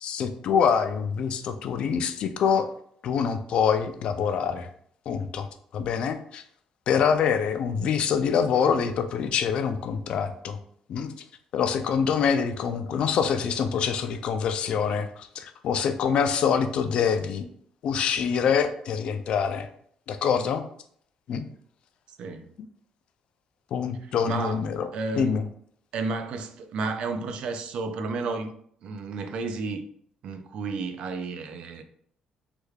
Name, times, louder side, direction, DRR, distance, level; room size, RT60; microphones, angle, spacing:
voice 1, 0.0-2.7 3.0-4.7 5.1-5.5 5.7-6.4 6.9-10.6 10.9-11.1 11.5-17.5 17.8-19.7 20.1-20.6 21.3-21.4 23.7-24.9 25.1-25.4, left 7 dB, 55° left, 0.3 m, -25 dB
voice 2, 22.2-22.5 24.2-24.6 24.9-25.4 25.9-28.5 28.8-29.8 30.2-31.8, right 4 dB, 55° right, 0.3 m, -32 dB
3.3 x 2.3 x 3.2 m
cardioid pair, 160°, 2 cm